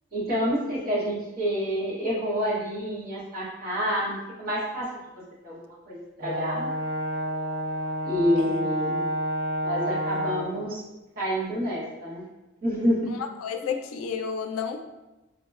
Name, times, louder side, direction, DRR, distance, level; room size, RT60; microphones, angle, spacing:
voice 1, 0.1-4.9 5.4-5.6 5.9-6.7 8.0-9.0 9.6-10.8 11.2-12.2 12.6-13.0, equal, 45° right, -7 dB, 0.9 m, -28 dB
Brass instrument, 6.2-10.6, equal, 85° right, 0.7 m, -29 dB
voice 2, 13.1-14.9, left 6 dB, 85° left, 6 dB, 0.3 m, -32 dB
3.6 x 2.1 x 2.3 m, 1.1 s
head